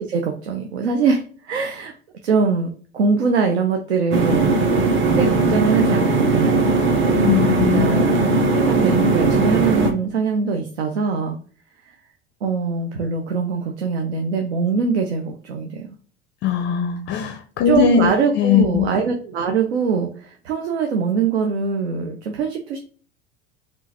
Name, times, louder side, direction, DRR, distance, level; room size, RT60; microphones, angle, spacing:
voice 1, 0.0-1.9 2.2-4.6 5.0-6.5 7.4-8.2 8.5-11.4 11.9-12.0 12.4-15.9 17.7-22.8, right 5 dB, 85° right, 4 dB, 0.5 m, -22 dB
sound 1, 4.1-9.9, right 3 dB, 35° right, 0.8 m, -18 dB
voice 2, 7.2-7.9 16.4-18.8, left 8 dB, 35° left, 7 dB, 0.4 m, -20 dB
3.6 x 2.5 x 2.8 m, 0.41 s
hypercardioid pair, 75°, 32 cm